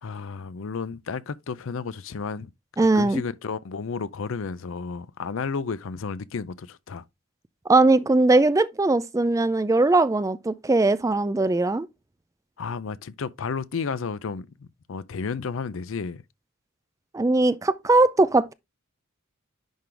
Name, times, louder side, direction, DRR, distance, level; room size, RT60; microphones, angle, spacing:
voice 1, 0.0-2.5 2.8-7.0 12.6-16.2, left 5 dB, 65° left, 0.5 m, -32 dB
voice 2, 2.8-3.2 7.7-11.9 17.1-18.5, right 2 dB, 15° right, 0.3 m, -20 dB
10.5 x 3.8 x 3.3 m
head